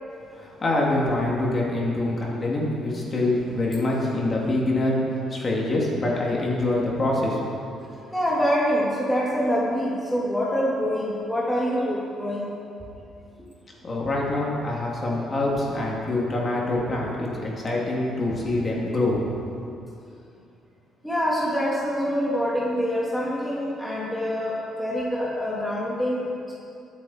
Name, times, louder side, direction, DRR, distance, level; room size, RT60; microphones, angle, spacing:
voice 1, 0.3-5.0 5.3-7.4 13.8-19.2, left 2 dB, 25° left, -3 dB, 2.7 m, -25 dB
voice 2, 8.1-12.5 21.0-26.5, equal, ahead, -6 dB, 2.2 m, -25 dB
23.0 x 9.0 x 4.4 m, 2.6 s
cardioid pair, 150°, 0 cm